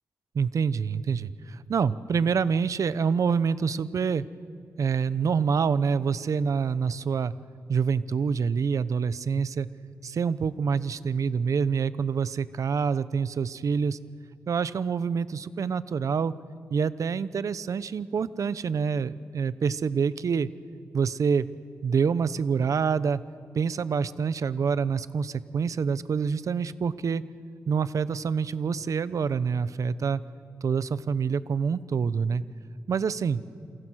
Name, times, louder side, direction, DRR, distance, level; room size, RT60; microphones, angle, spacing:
voice 1, 0.3-4.2 4.8-7.3 7.7-9.7 10.0-14.0 14.5-16.3 16.7-20.5 20.9-21.5 21.8-23.2 23.5-27.2 27.7-30.2 30.6-32.4 32.9-33.4, right 6 dB, 65° right, 16 dB, 0.9 m, -26 dB
28.0 x 27.0 x 6.4 m, 2.2 s
cardioid pair, 80°, 6 cm